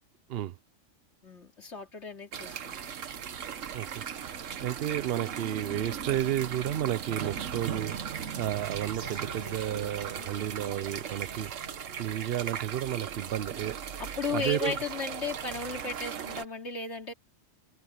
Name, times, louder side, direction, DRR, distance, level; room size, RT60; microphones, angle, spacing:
voice 1, 1.2-3.1 14.0-17.1, left 5 dB, 60° left, 3.1 m, -35 dB
sound 1, 2.3-16.5, right 8 dB, 75° right, 1.4 m, -38 dB
voice 2, 3.7-11.5 12.0-14.8, right 12 dB, 55° right, 0.8 m, -32 dB
sound 2, 9.0-13.0, left 4 dB, 35° left, 2.2 m, -51 dB
omnidirectional pair, 1.3 m